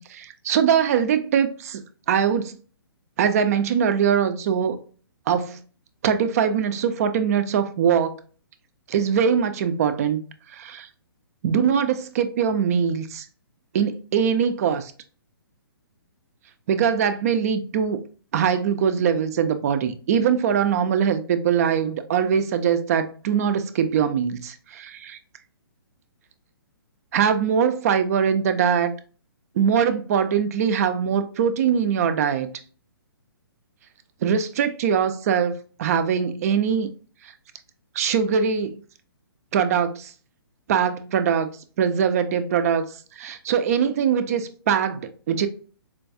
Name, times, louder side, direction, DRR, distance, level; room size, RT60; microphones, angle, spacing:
voice 1, 0.0-1.8 2.1-2.6 3.2-4.8 5.3-5.6 6.0-8.2 8.9-10.2 10.5-10.9 11.4-13.3 13.7-14.9 16.7-18.0 18.3-25.2 27.1-28.9 29.6-32.5 34.2-36.9 37.9-38.8 39.5-40.1 40.7-41.5 41.8-42.9 43.2-45.5, right 7 dB, 40° right, 0.4 m, -22 dB
4.4 x 2.2 x 2.5 m
figure-of-eight pair, 130°, 13 cm